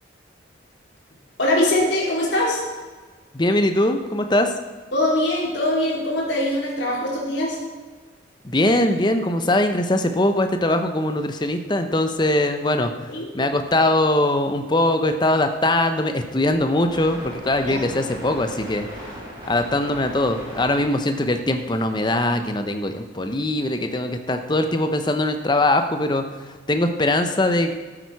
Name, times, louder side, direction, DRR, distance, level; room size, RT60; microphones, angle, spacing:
voice 1, 1.4-2.6 4.9-7.6 13.1-13.3 17.7-17.8, left 1 dB, 65° left, -4 dB, 3.4 m, -22 dB
voice 2, 3.3-4.5 8.4-13.1 13.3-18.9 19.5-27.7, left 1 dB, 25° left, 7 dB, 0.7 m, -21 dB
sound 1, 16.4-23.0 23.3-23.4, equal, 25° right, 3.8 m, -39 dB
13.0 x 8.8 x 4.7 m, 1.4 s
head